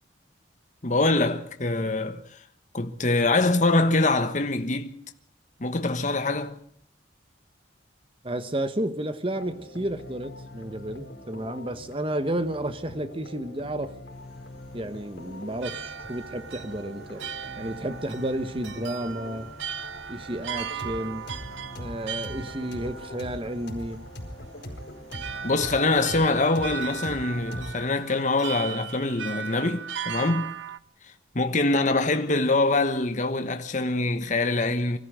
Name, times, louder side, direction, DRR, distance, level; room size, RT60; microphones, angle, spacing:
voice 1, 0.8-2.4 2.7-5.0 5.6-6.5 25.4-30.5 31.3-35.0, left 2 dB, 40° left, 1.2 m, -24 dB
voice 2, 8.2-13.9 14.7-17.2 17.6-19.5 20.1-21.3 21.8-24.0, right 1 dB, 30° right, 1.3 m, -31 dB
sound 1, 9.3-27.8, left 1 dB, 70° left, 4.6 m, -42 dB
sound 2, 14.1-27.5, equal, ahead, 7.3 m, -54 dB
sound 3, 15.3-30.8, right 8 dB, 70° right, 0.9 m, -38 dB
24.5 x 14.0 x 7.9 m
head